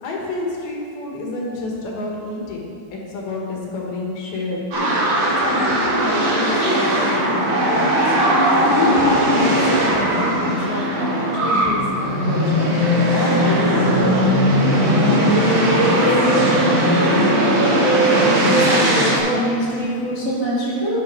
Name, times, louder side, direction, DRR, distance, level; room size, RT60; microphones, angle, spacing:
voice 1, 0.0-4.9 5.2-8.2 8.7-12.7 13.1-14.3, left 2 dB, 70° left, -2 dB, 3.6 m, -28 dB
sound 1, 4.7-19.2, equal, 65° right, 4.5 m, -18 dB
voice 2, 18.2-21.0, equal, 25° left, -9 dB, 2.3 m, -24 dB
11.5 x 10.0 x 4.7 m, 2.4 s
omnidirectional pair, 4.5 m